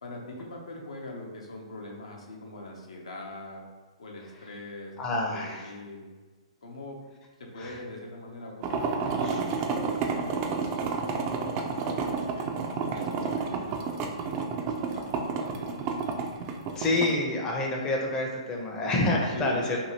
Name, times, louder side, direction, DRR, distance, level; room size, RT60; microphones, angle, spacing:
voice 1, 0.0-3.6 4.0-6.1 6.6-7.0 7.4-12.5 12.9-16.1 19.3-19.6, left 2 dB, 75° left, -1 dB, 0.6 m, -42 dB
voice 2, 5.0-5.7 7.6-7.7 9.2-9.4 16.8-19.8, left 2 dB, 20° left, -1 dB, 0.5 m, -28 dB
sound 1, 8.6-17.1, right 5 dB, 35° right, 0.3 m, -30 dB
2.7 x 2.6 x 2.8 m, 1.3 s
hypercardioid pair, 120°, 3 cm